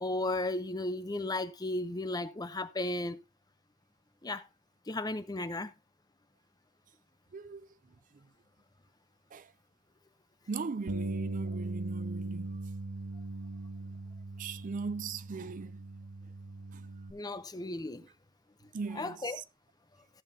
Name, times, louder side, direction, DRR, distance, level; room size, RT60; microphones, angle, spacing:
voice 1, 0.0-3.2 4.2-4.4 4.9-5.7 17.1-18.0 18.9-19.4, left 2 dB, 20° left, 0.6 m, -35 dB
voice 2, 7.3-7.7 9.3-9.5 10.5-12.5 14.4-15.8 16.7-16.8 18.7-19.4, right 4 dB, 40° right, 0.4 m, -39 dB
Bass guitar, 10.9-17.1, right 2 dB, 85° right, 1.3 m, -39 dB
14.5 x 7.6 x 2.7 m
head